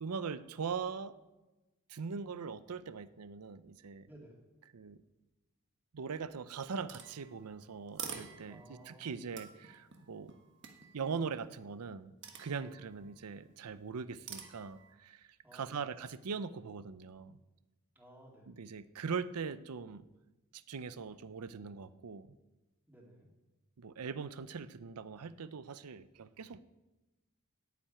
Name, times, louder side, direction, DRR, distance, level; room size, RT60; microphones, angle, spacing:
voice 1, 0.0-1.2 1.9-4.1 4.7-5.0 5.9-10.3 10.9-17.4 18.5-20.1 20.5-22.4 23.8-26.6, right 5 dB, 90° right, 15 dB, 0.6 m, -41 dB
voice 2, 4.0-4.4 8.5-9.4 12.5-12.8 15.4-15.9 17.9-18.6 22.9-23.3, right 1 dB, 10° right, -1 dB, 2.5 m, -56 dB
sound 1, 6.9-8.9 9.3-11.2 12.2-13.1 14.3-14.9, right 7 dB, 55° right, 1.4 m, -48 dB
9.3 x 7.4 x 9.1 m, 1.1 s
head